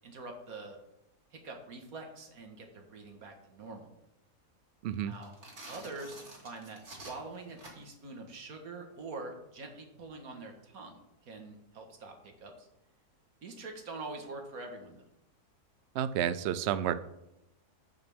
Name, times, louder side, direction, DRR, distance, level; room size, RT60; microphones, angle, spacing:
voice 1, 0.0-0.8 1.3-3.9 5.0-5.3 5.7-12.7 13.4-15.0, right 3 dB, 60° right, 3 dB, 1.9 m, -45 dB
voice 2, 4.8-5.1 15.9-17.0, right 10 dB, 85° right, 13 dB, 0.5 m, -30 dB
sound 1, 5.1-8.1, right 1 dB, 45° right, 2.6 m, -49 dB
14.5 x 5.8 x 3.6 m, 0.87 s
omnidirectional pair, 1.7 m